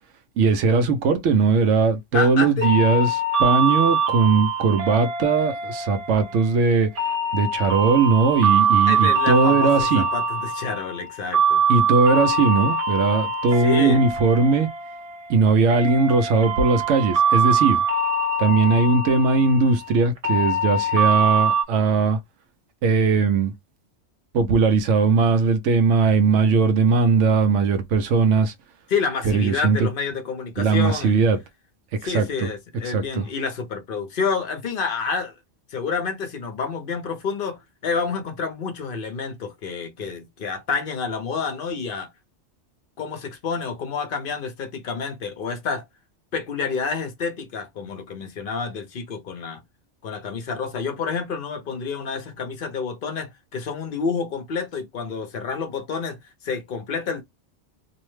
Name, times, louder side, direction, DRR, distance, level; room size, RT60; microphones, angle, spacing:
voice 1, 0.4-6.9 7.3-10.0 11.7-14.7 15.3-17.8 18.4-22.2 22.8-23.5 24.3-28.5 29.2-29.9 30.6-31.4 32.0-32.5 32.8-33.3, right 4 dB, 85° right, 0.9 m, -19 dB
voice 2, 2.1-2.7 8.9-11.6 13.6-14.1 28.9-31.1 32.0-35.3 35.7-42.1 43.0-45.8 46.3-49.6 50.0-56.2 56.4-57.2, left 5 dB, 55° left, 0.8 m, -29 dB
sound 1, 2.6-21.6, right 3 dB, 45° right, 0.5 m, -23 dB
2.7 x 2.1 x 3.0 m
omnidirectional pair, 1.2 m